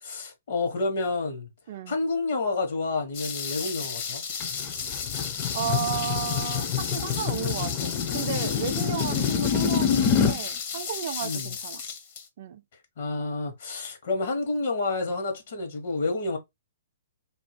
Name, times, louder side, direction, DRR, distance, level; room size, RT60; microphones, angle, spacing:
voice 1, 0.0-1.5 1.9-4.2 11.2-11.5 13.0-16.4, left 3 dB, 65° left, 1.2 m, -29 dB
sound 1, 3.1-12.3, left 6 dB, 50° left, 0.8 m, -34 dB
sound 2, 4.4-10.4, left 7 dB, 25° left, 0.5 m, -27 dB
voice 2, 5.5-11.8 12.4-12.6, right 10 dB, 50° right, 0.3 m, -33 dB
2.6 x 2.1 x 3.2 m
hypercardioid pair, 135°, 0 cm